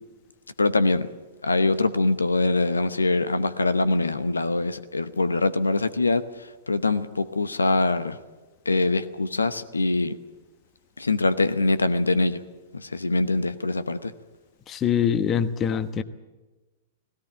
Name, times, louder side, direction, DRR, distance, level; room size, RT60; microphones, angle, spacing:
voice 1, 0.6-1.1 1.4-8.2 8.7-10.1 11.0-12.4 12.7-14.1, left 2 dB, 90° left, 13 dB, 0.9 m, -23 dB
voice 2, 14.7-16.0, left 8 dB, 25° left, 12 dB, 1.1 m, -24 dB
18.0 x 17.5 x 8.9 m, 1.2 s
hypercardioid pair, 110°, 0 cm